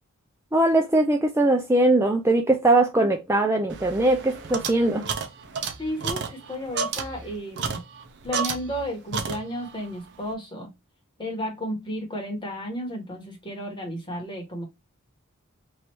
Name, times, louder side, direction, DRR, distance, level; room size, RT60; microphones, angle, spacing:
voice 1, 0.5-5.1, right 2 dB, 10° right, 0.3 m, -21 dB
sound 1, 3.7-8.9 9.1-9.8, right 5 dB, 55° right, 0.6 m, -32 dB
voice 2, 5.8-7.8 8.2-10.7 11.2-14.6, equal, 20° left, 1.3 m, -33 dB
3.1 x 2.7 x 4.4 m
head